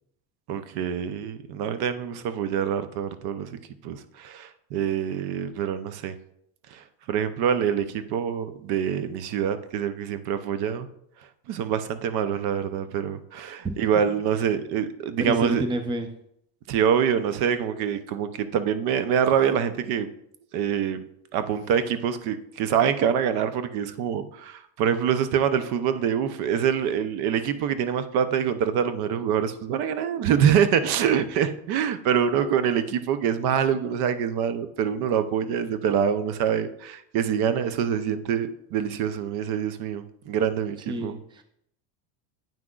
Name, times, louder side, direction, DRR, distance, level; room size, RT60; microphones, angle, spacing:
voice 1, 0.5-3.6 3.8-6.2 6.7-10.9 11.5-15.6 16.7-20.1 20.5-21.0 21.3-41.1, right 8 dB, 55° right, 11 dB, 0.6 m, -25 dB
voice 2, 15.2-16.1 40.9-41.4, right 1 dB, 10° right, 7 dB, 0.5 m, -29 dB
8.7 x 5.9 x 2.4 m, 0.72 s
supercardioid pair, 105°, 47 cm